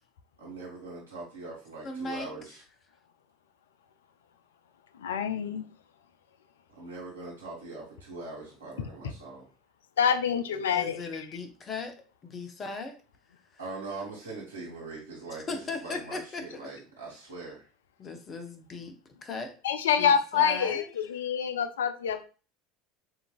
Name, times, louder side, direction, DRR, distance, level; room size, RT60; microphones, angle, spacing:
voice 1, 0.4-2.6 6.7-9.5 13.6-17.7, right 3 dB, 85° right, -7 dB, 1.6 m, -42 dB
voice 2, 1.8-2.3 10.5-12.0 12.2-13.0 15.3-16.7 18.0-19.0 19.2-19.5 20.0-20.9, left 3 dB, 30° left, 7 dB, 0.8 m, -38 dB
voice 3, 5.0-5.6 10.0-11.0 19.6-22.2, left 7 dB, 70° left, 10 dB, 0.4 m, -26 dB
6.8 x 2.6 x 2.4 m, 0.35 s
figure-of-eight pair, 70°, 0 cm